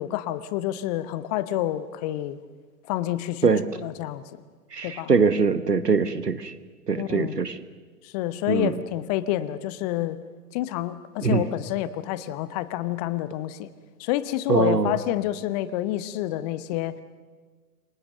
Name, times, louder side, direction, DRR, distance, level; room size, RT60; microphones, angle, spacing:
voice 1, 0.0-2.4 2.9-3.5 3.8-4.2 4.8-5.1 7.0-7.4 8.0-10.2 10.5-13.7 14.0-17.0, left 13 dB, 25° left, 15 dB, 0.9 m, -28 dB
voice 2, 4.7-6.5 6.9-7.6 8.5-8.8 11.2-11.4 14.5-14.9, right 5 dB, 80° right, 13 dB, 1.6 m, -22 dB
28.5 x 24.5 x 6.6 m, 1.4 s
figure-of-eight pair, 110°, 47 cm